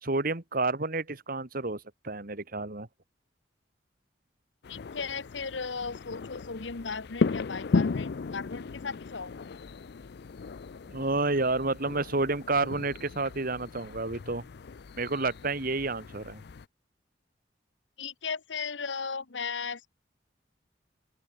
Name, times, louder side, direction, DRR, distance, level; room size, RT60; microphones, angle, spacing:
voice 1, 0.0-2.9 10.9-14.4 15.0-16.4, right 3 dB, 50° right, 2.2 m, -30 dB
sound 1, 4.6-16.7, left 4 dB, 60° left, 0.5 m, -35 dB
voice 2, 4.7-9.3 18.0-19.9, left 5 dB, 90° left, 1.2 m, -36 dB
open air
head